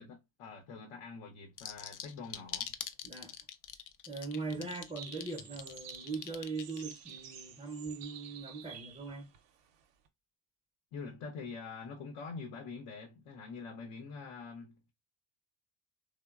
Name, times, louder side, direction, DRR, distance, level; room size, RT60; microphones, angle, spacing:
voice 1, 0.0-2.7 4.5-4.8 10.9-14.9, left 4 dB, 75° left, 0.8 m, -45 dB
sound 1, 1.6-7.1, left 9 dB, 45° left, 0.4 m, -43 dB
voice 2, 3.0-3.4 4.1-9.3, right 4 dB, 15° right, 0.5 m, -40 dB
sound 2, 4.3-10.1, right 9 dB, 65° right, 0.6 m, -51 dB
2.9 x 2.1 x 2.3 m
supercardioid pair, 70°, 46 cm